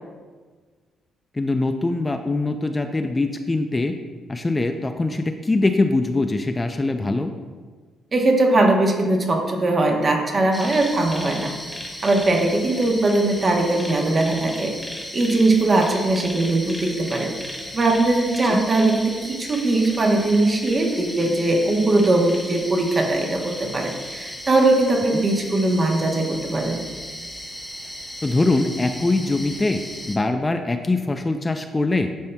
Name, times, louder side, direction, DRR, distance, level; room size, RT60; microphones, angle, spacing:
voice 1, 1.3-4.0 4.3-7.3 18.5-18.6 28.2-29.8 30.1-32.1, left 2 dB, 20° left, 6 dB, 0.3 m, -22 dB
voice 2, 8.1-11.5 12.0-17.3 17.7-26.8, right 2 dB, 35° right, 2 dB, 0.9 m, -20 dB
sound 1, 10.5-30.2, equal, ahead, 0.9 m, -36 dB
10.5 x 4.2 x 2.2 m, 1.5 s
cardioid pair, 90°, 0 cm